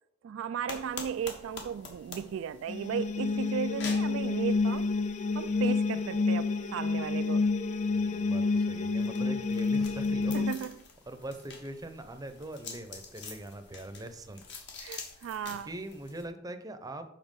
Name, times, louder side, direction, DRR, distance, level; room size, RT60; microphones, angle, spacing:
voice 1, 0.2-4.9 5.3-7.5 10.3-10.8 14.8-15.7, right 8 dB, 80° right, 0.3 m, -35 dB
sound 1, 0.7-16.3, left 4 dB, 60° left, 1.5 m, -48 dB
sound 2, 2.7-10.5, left 3 dB, 35° left, 0.4 m, -29 dB
voice 2, 7.8-10.5 11.1-14.5 15.5-17.1, right 1 dB, 20° right, 0.7 m, -42 dB
7.3 x 5.7 x 5.3 m
head